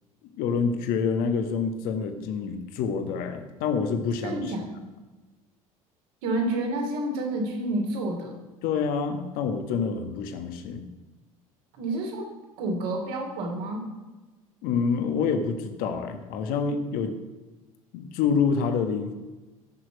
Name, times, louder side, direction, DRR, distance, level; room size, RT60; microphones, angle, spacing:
voice 1, 0.4-4.5 8.6-10.8 14.6-17.2 17.9-19.1, left 5 dB, 55° left, 7 dB, 1.4 m, -27 dB
voice 2, 4.2-4.8 6.2-8.3 11.8-12.3 12.6-13.9, right 2 dB, 55° right, 1 dB, 3.0 m, -29 dB
14.0 x 6.4 x 6.3 m, 1.2 s
figure-of-eight pair, 65°, 18 cm